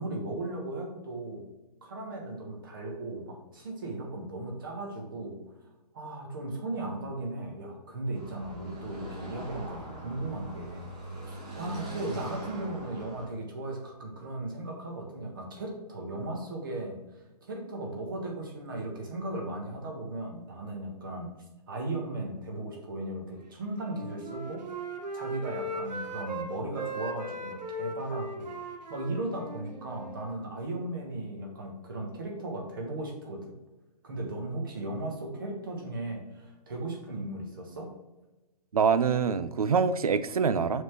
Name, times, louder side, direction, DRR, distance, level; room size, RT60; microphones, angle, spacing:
voice 1, 0.0-1.4 1.8-5.4 5.9-10.9 11.2-21.3 21.7-24.6 25.1-28.5 28.9-33.5 34.0-37.9, right 2 dB, 30° right, 0 dB, 1.3 m, -36 dB
Car passing by / Traffic noise roadway noise, 8.1-13.3, right 1 dB, 10° right, 0.5 m, -42 dB
Wind instrument woodwind instrument, 23.7-26.5 26.8-30.4, right 1 dB, 90° right, 1.3 m, -38 dB
voice 2, 38.7-40.8, right 6 dB, 60° right, 14 dB, 0.5 m, -25 dB
6.2 x 3.7 x 5.9 m, 1.1 s
hypercardioid pair, 175°, 21 cm